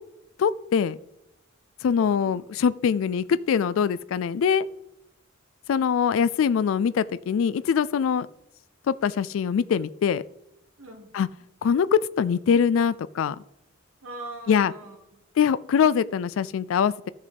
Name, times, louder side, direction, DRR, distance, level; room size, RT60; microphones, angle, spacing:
voice 1, 0.4-1.0 1.8-4.7 5.7-8.3 8.9-10.2 11.1-11.3 11.6-13.4 14.5-14.7 15.4-17.1, left 7 dB, 70° left, 18 dB, 0.3 m, -23 dB
voice 2, 2.0-2.4 10.8-11.2 14.0-15.2, right 2 dB, 85° right, 1 dB, 2.1 m, -42 dB
14.0 x 6.5 x 3.4 m, 0.87 s
head